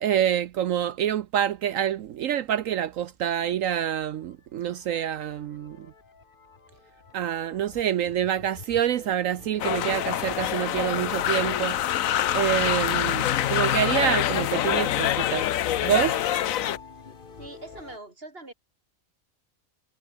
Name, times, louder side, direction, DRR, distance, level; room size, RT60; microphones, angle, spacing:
voice 1, 0.0-5.9 7.1-11.8 12.3-15.5 15.8-16.2, right 10 dB, 70° right, 1.0 m, -26 dB
sound 1, 3.6-18.0, left 5 dB, 40° left, 1.4 m, -47 dB
sound 2, 9.6-16.8, left 12 dB, 70° left, 1.1 m, -25 dB
voice 2, 17.4-18.5, right 2 dB, 40° right, 3.6 m, -42 dB
omnidirectional pair, 1.5 m